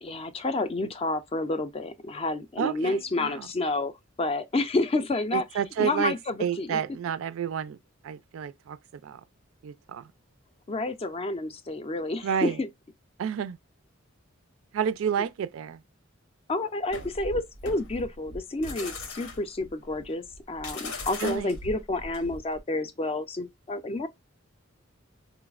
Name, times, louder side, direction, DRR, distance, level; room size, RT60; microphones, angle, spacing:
voice 1, 0.0-3.9 4.2-5.4 5.8-6.8 10.7-12.7 16.5-24.1, left 2 dB, 30° left, 0.4 m, -29 dB
voice 2, 2.6-3.5 5.3-6.1 6.4-7.8 8.0-9.2 9.6-10.1 12.2-12.6 13.2-13.6 14.7-15.8 21.2-21.6, right 8 dB, 70° right, 0.3 m, -30 dB
sound 1, 16.9-22.6, left 2 dB, 80° left, 0.8 m, -39 dB
3.9 x 2.0 x 2.3 m
head